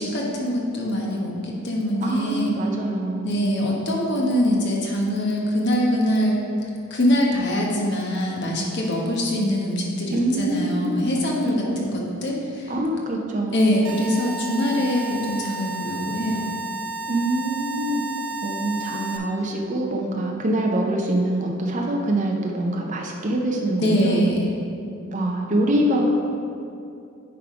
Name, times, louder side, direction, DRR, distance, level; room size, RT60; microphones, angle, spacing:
voice 1, 0.0-2.5 3.2-6.4 6.6-12.7 13.5-16.5 23.8-24.5, equal, 55° left, -2 dB, 1.2 m, -23 dB
voice 2, 2.0-3.4 10.1-10.8 11.6-11.8 12.7-13.8 17.1-18.0 18.4-24.2 25.1-26.1, right 1 dB, 35° right, 0 dB, 0.6 m, -24 dB
sound 1, 13.8-19.2, right 3 dB, 85° right, 0.8 m, -32 dB
9.5 x 3.6 x 4.9 m, 2.6 s
head